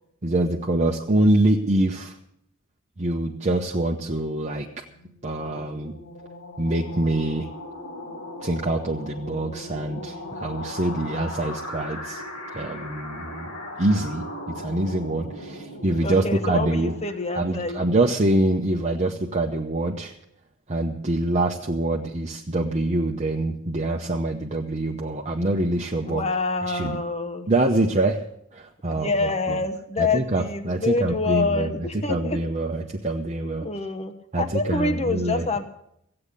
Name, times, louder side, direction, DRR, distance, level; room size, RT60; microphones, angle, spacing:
voice 1, 0.2-2.2 3.0-4.8 5.2-5.9 6.6-7.5 8.4-12.2 12.5-13.5 13.8-17.0 17.3-20.1 20.7-26.2 26.7-27.0 27.5-28.2 28.5-29.6 30.0-33.7 34.3-35.5, right 2 dB, 35° right, 1 dB, 0.9 m, -25 dB
sound 1, 4.9-17.5, left 1 dB, 80° left, 2.4 m, -38 dB
voice 2, 16.0-17.8 26.0-27.5 28.9-32.4 33.6-35.7, left 3 dB, 30° left, 9 dB, 1.1 m, -27 dB
15.0 x 8.8 x 8.1 m, 0.75 s
head